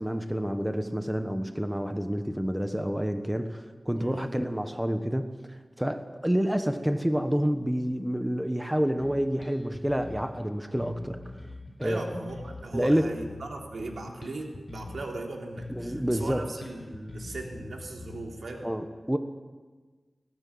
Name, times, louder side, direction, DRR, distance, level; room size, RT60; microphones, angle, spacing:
voice 1, 0.0-11.3 11.8-12.0 12.7-13.1 15.7-16.5 18.6-19.2, equal, 5° right, 8 dB, 1.2 m, -28 dB
voice 2, 4.0-4.3 11.8-18.7, right 2 dB, 80° right, 2 dB, 3.2 m, -38 dB
Bass guitar, 9.0-10.4 10.8-15.2 15.6-18.6, left 2 dB, 55° left, 6.8 m, -43 dB
19.5 x 17.5 x 8.7 m, 1.4 s
wide cardioid pair, 100°, 0 cm